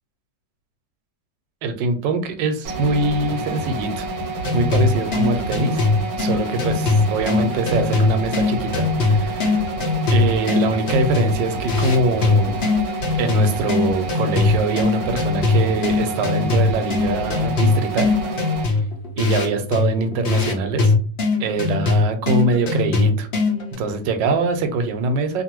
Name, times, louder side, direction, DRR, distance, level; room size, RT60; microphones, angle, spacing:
voice 1, 1.6-4.1 4.4-5.9 6.2-9.7 10.1-12.6 13.2-18.1 18.7-18.8 19.2-20.9 21.4-23.3 23.8-25.4, right 3 dB, 85° right, 8 dB, 1.3 m, -23 dB
sound 1, 2.6-18.6, right 3 dB, 65° right, 1.1 m, -29 dB
sound 2, 4.4-23.7, left 4 dB, 55° left, 0.7 m, -21 dB
2.7 x 2.5 x 2.9 m, 0.40 s
omnidirectional pair, 1.9 m